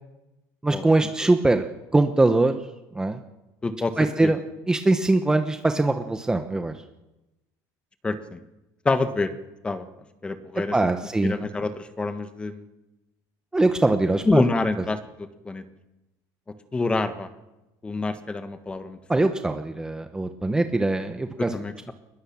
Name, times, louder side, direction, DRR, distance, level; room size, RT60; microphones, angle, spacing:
voice 1, 0.6-1.6 1.9-2.6 2.9-3.2 4.0-4.4 4.7-6.7 10.7-11.4 13.5-14.4 19.1-21.5, right 2 dB, 10° right, 7 dB, 1.1 m, -22 dB
voice 2, 3.6-3.9 4.2-4.3 8.0-8.4 8.8-9.3 9.6-9.8 10.2-10.7 11.2-12.6 14.2-15.0 15.4-15.6 16.7-17.3 17.8-19.2 21.4-21.9, left 3 dB, 15° left, 9 dB, 1.5 m, -26 dB
23.0 x 21.0 x 7.2 m, 1.0 s
cardioid pair, 150°, 8 cm